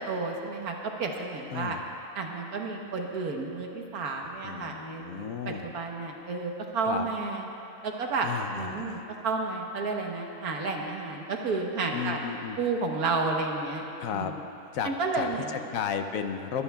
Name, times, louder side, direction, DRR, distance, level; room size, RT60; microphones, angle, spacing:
voice 1, 0.0-1.8 2.1-7.4 7.8-8.3 8.6-12.2 12.6-13.8 14.1-14.4 14.8-15.6, right 3 dB, 80° right, 1 dB, 1.6 m, -31 dB
voice 2, 1.5-1.8 4.2-5.7 6.8-7.1 8.2-9.0 11.9-12.6 14.0-14.3 14.7-16.6, left 7 dB, 70° left, 7 dB, 1.0 m, -34 dB
22.5 x 12.5 x 2.3 m, 2.8 s
omnidirectional pair, 1.6 m